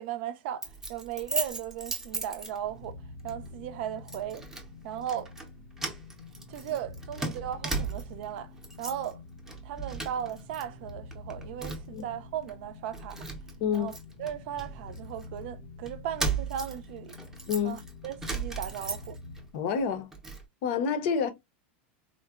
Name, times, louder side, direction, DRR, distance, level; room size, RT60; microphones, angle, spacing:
voice 1, 0.0-2.9 3.2-4.4 4.8-5.3 6.5-9.2 9.6-13.3 13.7-13.9 14.2-17.2 17.6-19.2, right 10 dB, 65° right, 0.4 m, -37 dB
Keys jangling, 0.6-2.9 3.3-3.5 4.1-4.7 5.0-5.5 5.8-8.3 8.6-9.1 9.4-10.6 10.9-12.0 12.5-12.6 12.9-15.3 15.9-19.4 19.8-20.4, right 3 dB, 5° right, 0.6 m, -36 dB
sound 1, 2.5-19.5, left 3 dB, 90° left, 1.1 m, -47 dB
voice 2, 13.6-13.9 17.5-17.8 19.5-20.1 20.6-21.3, left 6 dB, 60° left, 0.6 m, -28 dB
3.6 x 2.1 x 2.3 m
supercardioid pair, 140°, 6 cm